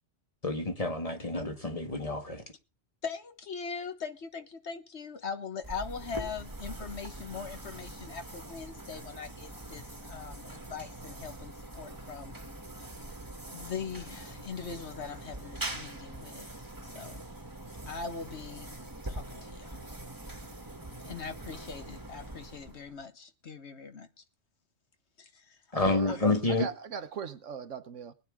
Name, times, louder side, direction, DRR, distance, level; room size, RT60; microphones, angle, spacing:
voice 1, 0.4-2.4 25.7-26.7, left 2 dB, 30° left, 1.7 m, -29 dB
voice 2, 3.0-12.3 13.5-16.5 16.9-17.2 17.9-18.7 19.0-19.9 21.0-24.1 25.2-25.4 26.1-26.4, left 5 dB, 65° left, 1.5 m, -41 dB
sound 1, 5.6-23.0, right 1 dB, 15° right, 1.4 m, -43 dB
voice 3, 25.7-26.2 26.5-28.1, right 7 dB, 85° right, 1.3 m, -39 dB
20.5 x 9.4 x 3.6 m
omnidirectional pair, 1.2 m